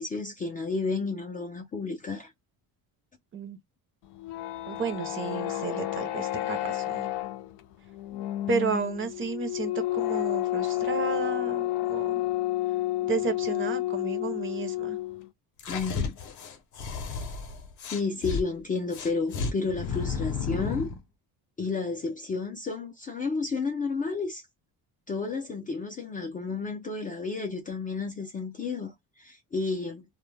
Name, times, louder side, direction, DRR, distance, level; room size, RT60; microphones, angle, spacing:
voice 1, 0.0-2.3 15.7-16.2 17.9-20.9 21.6-24.4 25.1-30.0, left 4 dB, 20° left, 0.4 m, -31 dB
sound 1, 4.0-15.3, left 15 dB, 90° left, 0.5 m, -30 dB
voice 2, 4.7-7.1 8.5-12.2 13.0-15.0, right 5 dB, 30° right, 0.6 m, -32 dB
sound 2, 15.6-18.4 18.9-21.0, left 5 dB, 50° left, 0.7 m, -32 dB
2.2 x 2.0 x 3.2 m
cardioid pair, 150°, 38 cm